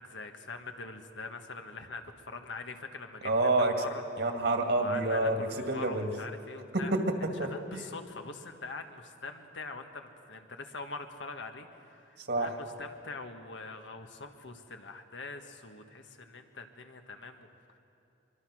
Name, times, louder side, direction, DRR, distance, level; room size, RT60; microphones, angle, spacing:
voice 1, 0.0-3.5 3.8-4.0 4.8-6.9 7.5-17.5, left 3 dB, 80° left, 5 dB, 1.6 m, -43 dB
voice 2, 3.2-3.8 4.2-6.1 6.7-7.8 12.2-12.5, right 2 dB, 65° right, 5 dB, 2.0 m, -28 dB
24.0 x 23.0 x 6.3 m, 2.6 s
head